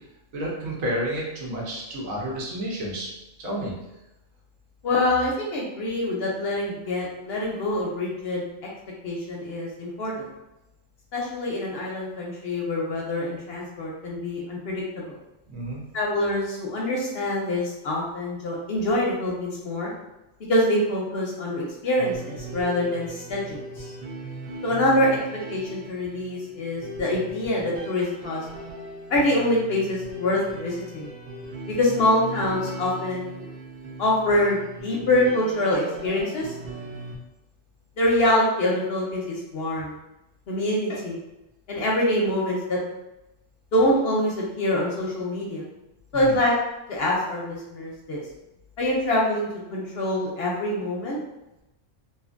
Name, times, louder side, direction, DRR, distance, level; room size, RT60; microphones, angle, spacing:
voice 1, 0.3-3.1 3.4-3.7 15.5-15.9 46.1-46.4, right 1 dB, 85° right, -3 dB, 1.2 m, -30 dB
voice 2, 4.8-8.4 9.0-10.3 11.1-15.2 15.9-19.9 20.5-23.8 24.6-25.2 25.5-28.4 29.1-31.1 31.7-33.3 34.0-36.5 38.0-39.9 40.5-41.2 41.7-42.8 43.7-45.6 46.1-46.6 46.9-48.2 48.8-51.2, left 1 dB, 60° left, -3 dB, 0.7 m, -25 dB
sound 1, 22.0-37.2, right 2 dB, 55° right, 0.7 m, -38 dB
2.7 x 2.5 x 2.4 m, 0.92 s
omnidirectional pair, 1.4 m